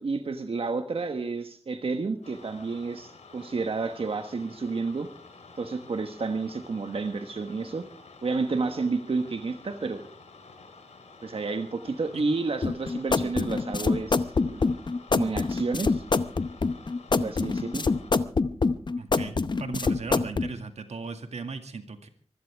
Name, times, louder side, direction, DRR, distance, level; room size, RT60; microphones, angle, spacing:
voice 1, 0.0-5.1 5.6-7.9 8.2-10.1 11.2-14.6 15.1-16.0 17.2-17.8, right 4 dB, 60° right, 7 dB, 1.3 m, -30 dB
sound 1, 2.2-18.1, left 3 dB, 85° left, 4.0 m, -50 dB
sound 2, 12.6-20.5, left 4 dB, 45° left, 0.8 m, -25 dB
voice 2, 19.0-22.1, right 4 dB, 80° right, 7 dB, 2.1 m, -37 dB
24.0 x 16.0 x 3.5 m, 0.42 s
wide cardioid pair, 100°, 11 cm